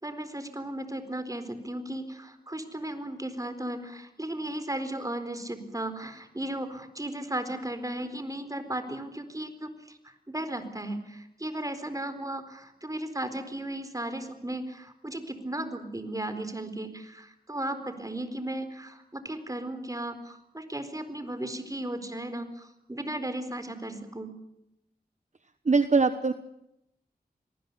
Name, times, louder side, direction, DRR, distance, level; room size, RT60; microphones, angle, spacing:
voice 1, 0.0-10.0 10.3-24.3, right 1 dB, 20° right, 10 dB, 4.2 m, -35 dB
voice 2, 25.6-26.3, right 4 dB, 45° right, 11 dB, 1.2 m, -22 dB
25.5 x 19.5 x 8.2 m, 0.82 s
wide cardioid pair, 55°, 16 cm